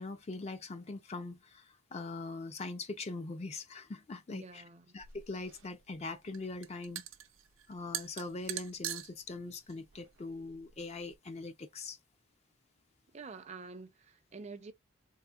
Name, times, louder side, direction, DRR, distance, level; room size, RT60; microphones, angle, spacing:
voice 1, 0.0-4.6 4.9-7.0 7.7-12.0, left 3 dB, 30° left, 0.4 m, -42 dB
voice 2, 4.3-4.9 13.1-14.7, right 4 dB, 35° right, 0.4 m, -48 dB
sound 1, 5.0-11.2, right 12 dB, 85° right, 0.5 m, -44 dB
3.8 x 2.7 x 2.2 m
head